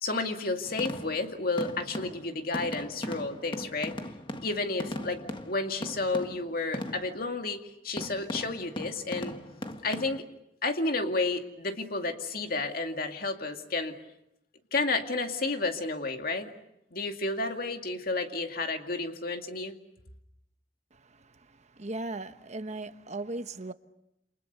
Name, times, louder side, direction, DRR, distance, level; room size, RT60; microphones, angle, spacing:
voice 1, 0.0-3.9 4.4-9.4 9.8-10.2 10.6-13.9 14.7-16.5 16.9-19.8, left 3 dB, 55° left, 2.3 m, -31 dB
sound 1, 0.6-7.3 8.0-10.2, left 1 dB, 30° left, 1.6 m, -39 dB
voice 2, 21.8-23.7, right 2 dB, 40° right, 1.1 m, -37 dB
29.0 x 27.5 x 6.8 m
head